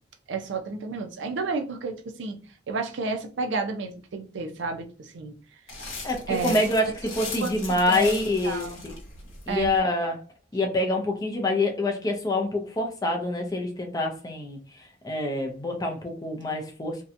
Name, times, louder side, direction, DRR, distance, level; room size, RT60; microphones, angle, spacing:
voice 1, 0.3-2.4 2.7-5.3 6.3-6.6 7.4-8.2 8.4-8.8 9.5-9.7, right 3 dB, 65° right, 0.4 m, -31 dB
sound 1, 5.7-9.8, left 3 dB, 85° left, 0.9 m, -39 dB
voice 2, 6.0-8.9 9.5-10.2 10.5-14.6 15.0-17.0, left 2 dB, 20° left, 0.4 m, -26 dB
2.7 x 2.1 x 2.5 m
head